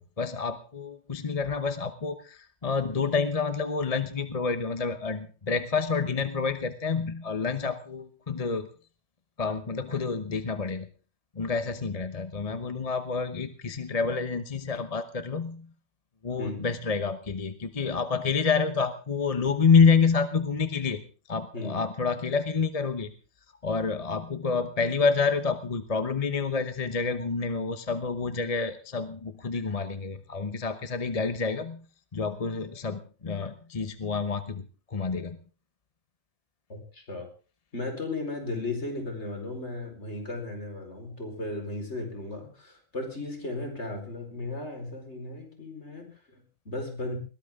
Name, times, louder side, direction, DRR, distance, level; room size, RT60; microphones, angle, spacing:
voice 1, 0.2-8.7 9.4-10.9 11.4-15.7 16.2-21.0 21.3-23.1 23.6-31.8 32.1-34.6 34.9-35.4, left 5 dB, 30° left, 10 dB, 1.0 m, -28 dB
voice 2, 36.7-37.3 37.7-47.2, left 2 dB, 55° left, 3 dB, 4.9 m, -36 dB
21.0 x 18.0 x 3.7 m, 0.38 s
omnidirectional pair, 1.4 m